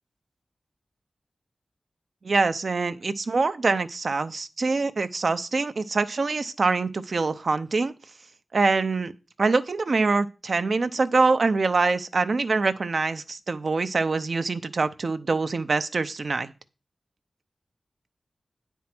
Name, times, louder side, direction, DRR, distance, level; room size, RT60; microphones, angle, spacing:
voice 1, 2.2-7.9 8.5-9.1 9.4-16.5, right 3 dB, 65° right, 11 dB, 0.6 m, -24 dB
9.5 x 4.5 x 6.0 m, 0.33 s
wide cardioid pair, 75°, 0 cm